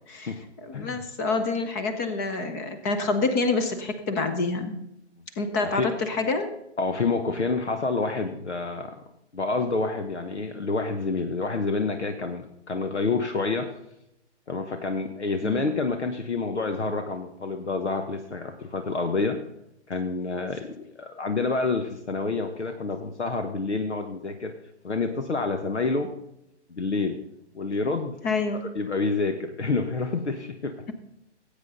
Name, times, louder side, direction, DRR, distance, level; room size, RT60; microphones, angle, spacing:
voice 1, 0.6-4.8 5.4-6.5 15.4-15.6 28.2-28.6, left 3 dB, 15° left, 8 dB, 0.7 m, -27 dB
voice 2, 5.6-5.9 6.8-9.0 9.3-13.7 14.5-19.4 19.9-24.5 24.8-26.1 26.7-27.2 27.5-28.1 28.5-30.9, left 3 dB, 70° left, 7 dB, 1.2 m, -28 dB
18.5 x 8.4 x 3.9 m, 0.82 s
figure-of-eight pair, 130°, 35 cm